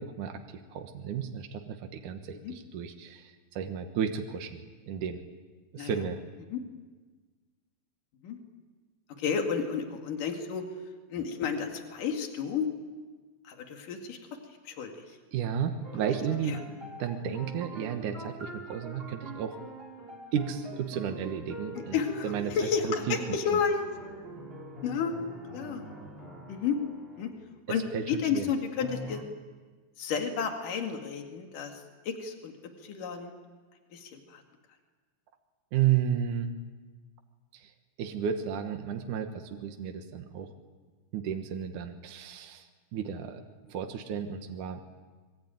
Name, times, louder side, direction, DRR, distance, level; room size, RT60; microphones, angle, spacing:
voice 1, 0.0-5.2 5.7-6.2 15.3-16.6 17.0-19.6 20.3-22.0 22.2-22.6 22.8-23.2 27.9-28.5 35.7-36.5 37.5-37.7 38.0-40.5 41.1-43.4 43.7-44.8, right 8 dB, 75° right, 5 dB, 2.8 m, -33 dB
voice 2, 9.1-10.6 11.1-12.7 13.4-14.2 14.7-15.2 16.5-16.6 21.8-23.9 24.8-25.2 25.5-25.8 26.5-26.8 27.2-27.3 27.7-29.2 30.0-32.5 32.8-33.3 33.9-34.4, left 6 dB, 80° left, 3 dB, 3.8 m, -31 dB
sound 1, 15.8-27.4 28.8-29.2, right 2 dB, 20° right, 2.8 m, -44 dB
25.5 x 23.5 x 9.3 m, 1.4 s
omnidirectional pair, 3.7 m